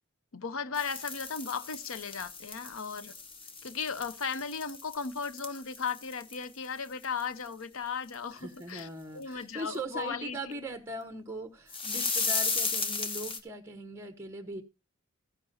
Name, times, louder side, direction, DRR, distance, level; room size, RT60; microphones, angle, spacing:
voice 1, 0.3-3.1 3.6-10.4, left 5 dB, 75° left, 0.7 m, -36 dB
sound 1, 0.7-6.7 7.0-7.2 7.5-7.6 8.1-8.2 8.8-8.9 11.7-13.4, left 4 dB, 25° left, 1.2 m, -35 dB
voice 2, 8.4-14.6, right 1 dB, 15° right, 1.1 m, -40 dB
14.5 x 10.5 x 2.6 m
head